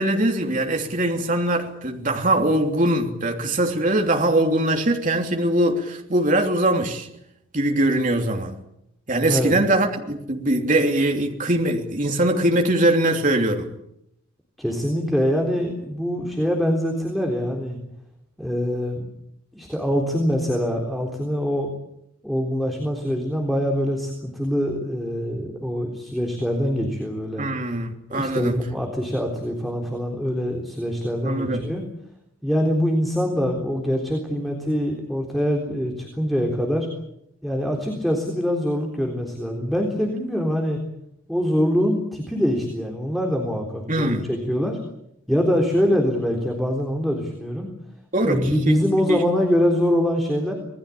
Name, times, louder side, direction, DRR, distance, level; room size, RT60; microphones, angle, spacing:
voice 1, 0.0-7.1 7.5-8.6 9.1-13.7 27.4-28.6 31.2-31.6 43.9-44.3 48.1-48.8 49.1-49.2, right 1 dB, 40° right, 3.2 m, -22 dB
voice 2, 14.6-17.8 18.4-19.0 19.5-21.7 22.2-27.4 28.1-31.8 32.4-36.9 37.4-40.8 41.3-44.8 45.3-47.7 48.2-50.5, equal, ahead, 3.7 m, -24 dB
27.5 x 20.0 x 8.6 m
head